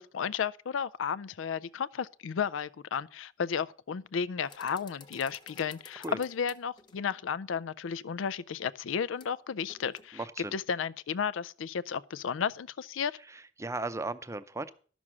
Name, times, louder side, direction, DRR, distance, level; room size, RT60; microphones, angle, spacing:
voice 1, 0.0-10.2 10.5-13.2, left 7 dB, 90° left, 0.4 m, -33 dB
sound 1, 4.4-7.2 9.2-9.4 9.7-10.1, left 4 dB, 25° left, 1.0 m, -53 dB
voice 2, 10.1-10.6 13.3-14.7, right 2 dB, 15° right, 0.6 m, -36 dB
12.0 x 6.2 x 7.3 m
head